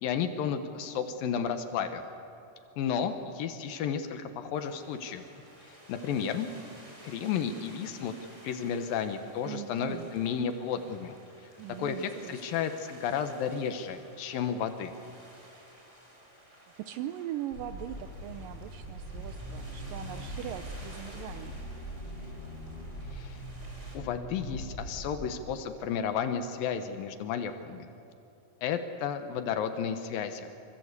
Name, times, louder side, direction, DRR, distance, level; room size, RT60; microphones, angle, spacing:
voice 1, 0.0-2.0 2.8-5.2 5.9-6.5 7.0-8.1 8.4-11.1 11.8-14.9 23.1-23.4 23.9-27.9 28.6-30.5, left 7 dB, 85° left, 8 dB, 3.0 m, -32 dB
sound 1, 4.5-24.0, right 1 dB, 20° right, 5.2 m, -54 dB
voice 2, 9.4-10.1 11.6-12.4 16.8-21.6, right 12 dB, 80° right, 10 dB, 2.4 m, -40 dB
sound 2, 17.5-25.2, equal, 35° left, 5.8 m, -41 dB
26.0 x 25.0 x 8.3 m, 2.8 s
omnidirectional pair, 3.9 m